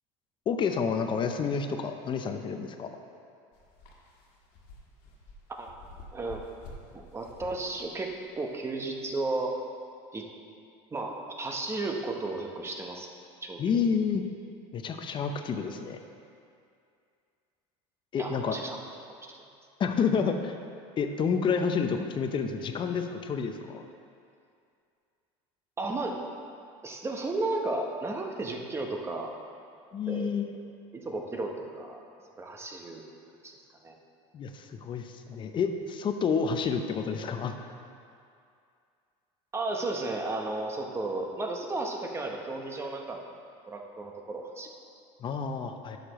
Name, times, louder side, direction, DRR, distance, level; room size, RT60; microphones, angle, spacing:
voice 1, 0.5-2.9 13.6-14.2 14.7-16.0 18.1-18.6 19.8-20.5 21.0-23.9 29.9-30.5 34.3-37.5 45.2-46.0, left 6 dB, 35° left, 6 dB, 0.7 m, -29 dB
sound 1, 3.5-9.4, left 2 dB, 70° left, 1.6 m, -50 dB
voice 2, 6.1-6.4 6.9-9.6 10.1-10.3 10.9-13.1 13.4-13.6 18.2-18.8 19.1-19.4 25.8-26.2 26.8-29.3 30.1-30.3 30.9-32.0 32.4-33.0 33.4-33.6 33.8-33.9 39.5-43.2 43.7-44.7, right 2 dB, 20° right, 2 dB, 1.0 m, -34 dB
11.5 x 6.7 x 3.1 m, 2.4 s
supercardioid pair, 115°, 14 cm